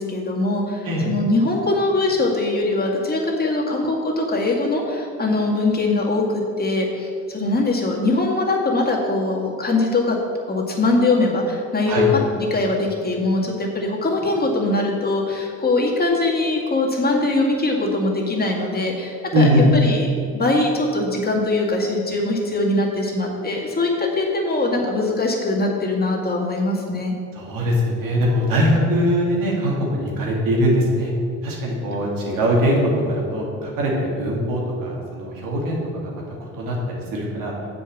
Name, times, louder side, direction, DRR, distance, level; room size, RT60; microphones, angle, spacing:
voice 1, 0.0-10.2 10.5-12.1 12.3-20.1 20.3-27.1, left 2 dB, 30° left, -2 dB, 2.2 m, -22 dB
voice 2, 19.3-19.6 27.4-31.1 31.4-37.5, equal, 75° right, -2 dB, 2.5 m, -21 dB
7.6 x 5.4 x 7.2 m, 2.4 s
supercardioid pair, 75°, 33 cm